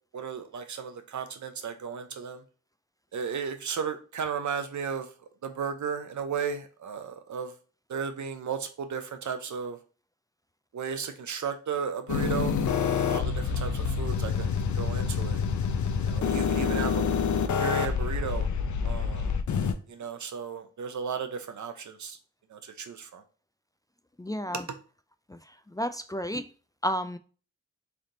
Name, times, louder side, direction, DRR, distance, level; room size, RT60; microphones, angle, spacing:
voice 1, 0.1-2.4 3.1-5.1 5.4-7.5 7.9-9.8 10.7-15.4 16.0-17.1 17.6-18.5 18.8-19.3 19.9-22.2 22.5-23.2 24.5-24.6, right 6 dB, 75° right, 0.7 m, -34 dB
sound 1, 12.1-19.7, left 6 dB, 75° left, 0.6 m, -27 dB
voice 2, 24.2-24.6 25.3-25.4 25.7-26.5 26.8-27.2, equal, 10° left, 0.3 m, -31 dB
3.4 x 2.6 x 3.8 m
cardioid pair, 40°, 30 cm